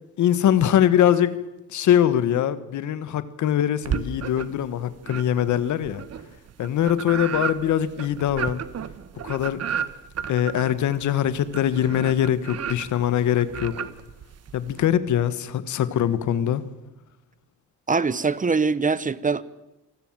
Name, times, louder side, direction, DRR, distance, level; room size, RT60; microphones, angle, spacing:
voice 1, 0.2-1.4 1.7-6.0 6.6-8.6 9.2-9.6 10.3-13.7 14.5-16.6, left 10 dB, 75° left, 1.6 m, -22 dB
sound 1, 3.8-4.7 5.0-14.9, right 8 dB, 55° right, 1.4 m, -33 dB
voice 2, 17.9-19.4, right 4 dB, 25° right, 1.0 m, -23 dB
28.0 x 19.5 x 7.6 m
cardioid pair, 90°, 30 cm